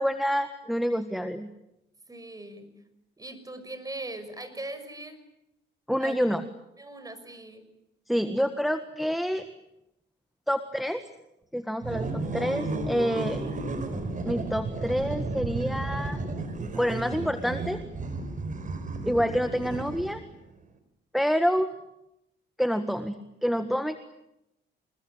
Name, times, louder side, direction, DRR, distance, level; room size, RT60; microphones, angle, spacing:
voice 1, 0.0-1.5 5.9-6.4 8.1-9.4 10.5-11.0 11.5-13.4 14.2-16.2 16.7-17.8 19.0-20.2 21.1-21.7 22.6-24.0, equal, ahead, 8 dB, 1.6 m, -27 dB
voice 2, 2.1-2.8 3.2-5.2 6.0-6.2 6.8-7.7, right 2 dB, 20° right, 10 dB, 6.1 m, -40 dB
sound 1, 11.8-20.4, right 3 dB, 40° right, 5.0 m, -33 dB
27.5 x 21.0 x 8.9 m, 0.87 s
cardioid pair, 90°, 20 cm